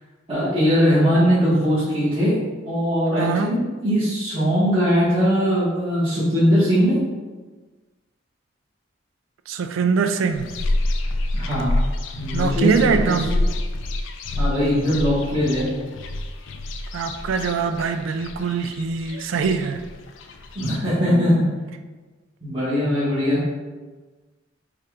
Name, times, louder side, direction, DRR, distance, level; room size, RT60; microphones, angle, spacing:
voice 1, 0.3-2.3 2.6-7.0 11.3-11.7 12.1-13.3 14.4-15.7 20.5-21.5 22.4-23.4, equal, 30° right, 1.5 m, -20 dB
voice 2, 3.2-3.5 9.5-10.5 12.3-13.4 16.9-19.8, right 5 dB, 90° right, 0.3 m, -23 dB
sound 1, 10.3-20.8, left 1 dB, 70° left, 0.4 m, -27 dB
5.6 x 2.5 x 3.4 m
head